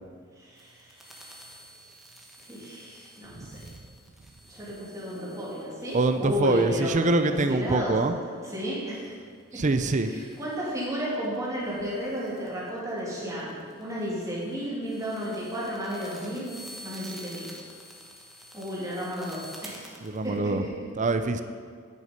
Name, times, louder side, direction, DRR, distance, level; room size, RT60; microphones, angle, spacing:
voice 1, 0.4-1.5 2.5-3.5 4.5-7.9 8.4-9.2 9.5-9.6 10.0-17.5 18.5-20.0 20.2-20.7, equal, 15° right, -7 dB, 2.8 m, -33 dB
sound 1, 0.6-7.5 10.0-20.4, equal, ahead, 1.2 m, -49 dB
voice 2, 3.4-3.8 5.9-8.2 9.5-10.1 20.0-20.6 21.0-21.4, right 3 dB, 35° right, 9 dB, 0.6 m, -25 dB
sound 2, 5.1-9.1, equal, 80° right, 2.7 m, -47 dB
9.6 x 8.3 x 5.3 m, 2.1 s
head